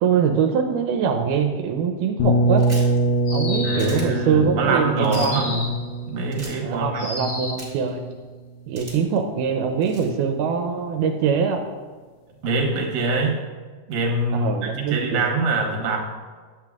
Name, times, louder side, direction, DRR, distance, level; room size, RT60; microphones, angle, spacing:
voice 1, 0.0-2.7 3.3-5.6 6.6-8.0 8.7-11.6 14.3-15.5, right 6 dB, 85° right, 4 dB, 2.1 m, -23 dB
sound 1, 2.2-8.0, right 1 dB, 75° left, 1.9 m, -24 dB
sound 2, 2.6-3.0 3.8-4.0 5.0-5.3 6.3-6.5 7.6-7.9 8.7-9.2 9.8-10.1, right 2 dB, 40° right, 0.7 m, -39 dB
sound 3, 3.2-4.1 5.1-5.9 6.9-7.7, left 2 dB, 55° left, 0.9 m, -32 dB
voice 2, 3.6-5.7 6.1-7.3 12.4-13.4 13.9-16.0, right 2 dB, 65° right, 0 dB, 2.0 m, -24 dB
9.9 x 7.6 x 2.3 m, 1.4 s
omnidirectional pair, 3.7 m